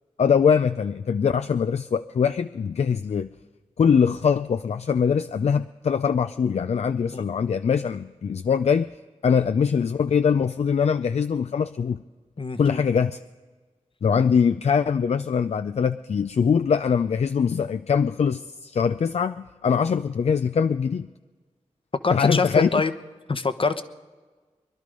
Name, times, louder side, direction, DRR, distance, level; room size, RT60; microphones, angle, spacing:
voice 1, 0.2-3.3 3.8-8.9 9.2-12.0 12.6-13.2 14.0-21.1 22.1-22.8, left 6 dB, 65° left, 11 dB, 0.4 m, -22 dB
voice 2, 12.4-12.8 22.0-22.9 23.3-23.8, left 4 dB, 45° left, 11 dB, 1.0 m, -25 dB
22.0 x 11.5 x 5.3 m, 1.4 s
cardioid pair, 40°, 12 cm